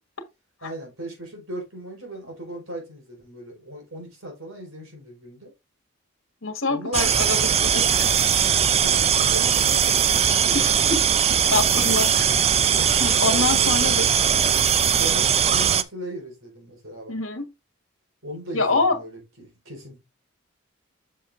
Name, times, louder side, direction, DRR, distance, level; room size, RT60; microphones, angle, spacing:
voice 1, 0.6-5.5 6.7-7.3 8.8-10.8 12.7-14.0 15.0-17.2 18.2-20.0, right 1 dB, 85° right, 4.4 m, -38 dB
voice 2, 6.4-8.1 8.4-8.5 10.5-11.0 11.3-12.3 13.0-14.2 17.1-17.5 18.5-19.0, left 3 dB, 75° left, 1.4 m, -26 dB
sound 1, 6.9-15.8, right 8 dB, 30° right, 0.4 m, -20 dB
8.0 x 6.5 x 2.5 m
head